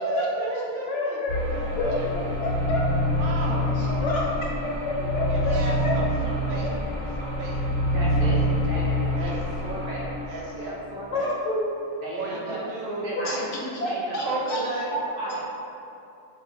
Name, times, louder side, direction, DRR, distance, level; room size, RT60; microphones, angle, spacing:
voice 1, 0.0-2.1 3.2-4.0 5.3-6.8 7.2-7.6 8.3-8.4 9.2-9.6 10.3-10.7 12.2-13.1 14.2-14.9 15.2-15.4, right 3 dB, 75° right, -3 dB, 1.0 m, -34 dB
voice 2, 0.9-1.4 1.8-3.0 3.8-5.6 5.8-5.9 11.1-11.6 13.3-14.6 14.9-15.0, left 1 dB, 65° left, -4 dB, 0.9 m, -29 dB
sound 1, 1.3-10.9, left 1 dB, 80° left, 1.2 m, -26 dB
voice 3, 7.9-10.1 10.5-11.3 12.0-13.5 13.8-15.4, right 1 dB, 55° right, -6 dB, 0.7 m, -35 dB
2.6 x 2.3 x 3.9 m, 2.7 s
omnidirectional pair, 1.5 m